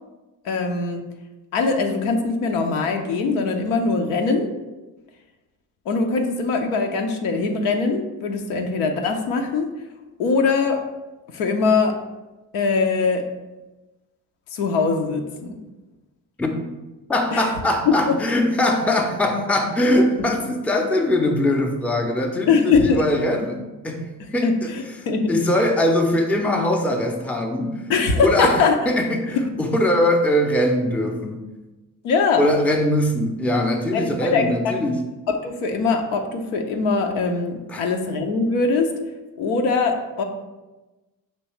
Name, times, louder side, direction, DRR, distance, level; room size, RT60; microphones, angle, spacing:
voice 1, 0.4-1.0 1.5-4.5 5.9-9.7 10.2-10.9 11.3-12.0 12.5-13.2 14.5-15.6 17.3-17.5 17.9-18.2 22.5-23.0 24.4-25.3 27.9-28.8 29.5-29.6 32.0-32.5 33.9-34.8 35.3-38.9 39.4-40.2, left 4 dB, 75° left, 3 dB, 0.7 m, -22 dB
voice 2, 17.1-24.7 25.3-27.8 28.2-31.4 32.4-35.0 37.7-37.8, left 1 dB, 5° left, 3 dB, 0.5 m, -21 dB
5.4 x 3.0 x 3.0 m, 1.1 s
hypercardioid pair, 45°, 49 cm